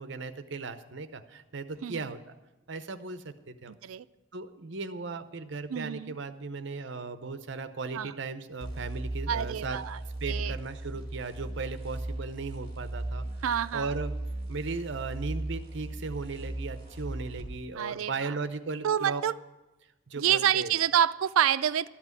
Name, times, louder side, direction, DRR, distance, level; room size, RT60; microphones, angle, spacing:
voice 1, 0.0-2.2 2.7-3.7 4.3-9.8 10.2-13.3 13.7-14.1 14.5-19.2 20.1-20.7, right 4 dB, 60° right, 11 dB, 0.7 m, -37 dB
voice 2, 3.7-4.0 5.7-6.1 7.9-8.1 9.3-10.0 10.3-10.6 13.4-13.9 17.8-18.3 18.8-19.4 20.2-21.9, right 9 dB, 85° right, 16 dB, 0.4 m, -28 dB
sound 1, 8.6-17.5, right 1 dB, 30° right, 3.3 m, -37 dB
12.5 x 6.0 x 9.5 m, 1.1 s
head